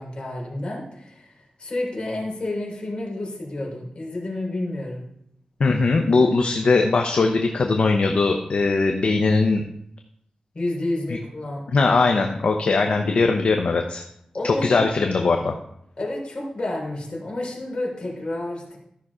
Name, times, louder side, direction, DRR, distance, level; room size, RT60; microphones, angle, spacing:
voice 1, 0.0-5.1 10.5-11.7 14.3-14.8 16.0-18.8, left 1 dB, 45° left, -2 dB, 3.9 m, -30 dB
voice 2, 5.6-9.6 11.7-14.0 14.4-15.5, left 3 dB, 60° left, 4 dB, 0.8 m, -20 dB
13.5 x 5.9 x 4.9 m, 0.75 s
wide cardioid pair, 125°, 2 cm